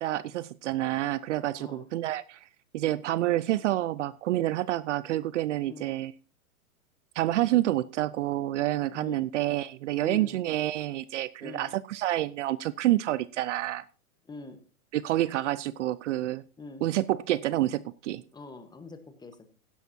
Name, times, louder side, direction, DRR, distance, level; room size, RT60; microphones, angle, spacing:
voice 1, 0.0-2.5 2.7-6.1 7.2-13.8 14.9-16.4 16.8-18.2, right 15 dB, 55° right, 19 dB, 0.6 m, -28 dB
voice 2, 8.9-9.2 10.0-10.4 11.4-11.7 14.2-14.6 16.6-16.8 18.3-19.5, left 3 dB, 10° left, 9 dB, 1.3 m, -43 dB
16.5 x 10.5 x 2.7 m, 0.36 s
hypercardioid pair, 130°, 44 cm